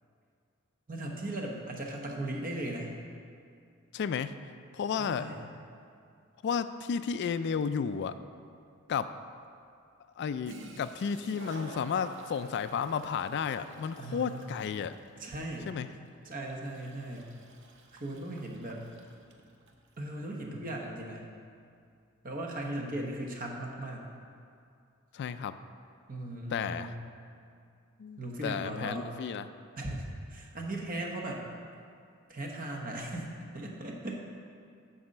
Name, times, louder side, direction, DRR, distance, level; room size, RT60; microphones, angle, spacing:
voice 1, 0.9-3.0 5.0-5.5 14.0-14.5 15.2-15.7 16.2-17.3 18.0-18.8 20.0-21.2 22.2-24.0 26.1-27.1 28.2-29.1 29.8-31.5 32.3-34.2, right 1 dB, 40° right, 0 dB, 1.1 m, -38 dB
voice 2, 3.9-4.3 4.7-5.3 6.4-8.2 8.9-9.1 10.2-15.0 15.7-15.9 25.1-25.6 26.5-26.9 28.0-29.5, left 6 dB, 55° left, 11 dB, 0.3 m, -32 dB
Toilet flush, 10.2-10.3 10.4-19.8, right 2 dB, 60° right, 0.8 m, -50 dB
10.5 x 4.1 x 6.5 m, 2.4 s
head